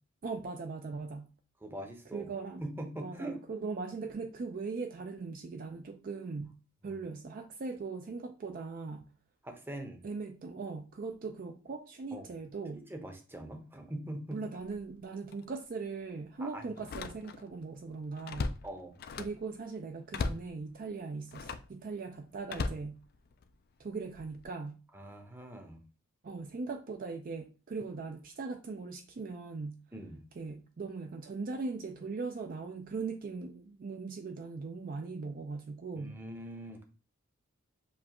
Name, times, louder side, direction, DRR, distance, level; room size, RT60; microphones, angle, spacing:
voice 1, 0.2-1.3 2.1-2.6 3.0-6.5 6.8-9.1 10.0-12.9 14.3-18.5 19.2-23.0 23.8-24.8 26.2-29.8 30.4-36.2, right 4 dB, 40° right, 0.4 m, -40 dB
voice 2, 1.6-2.2 2.6-3.4 6.8-6.9 9.4-10.0 12.1-12.2 12.7-14.4 16.4-16.6 18.6-19.0 24.9-25.8 29.9-30.2 36.0-36.8, right 1 dB, 10° right, 0.7 m, -42 dB
Slam, 14.6-14.9 15.3-15.4 16.8-17.6 17.9-19.5 20.1-20.5 21.3-21.7 22.5-23.5 24.1-24.4, left 4 dB, 45° left, 0.3 m, -38 dB
6.9 x 2.4 x 2.9 m
head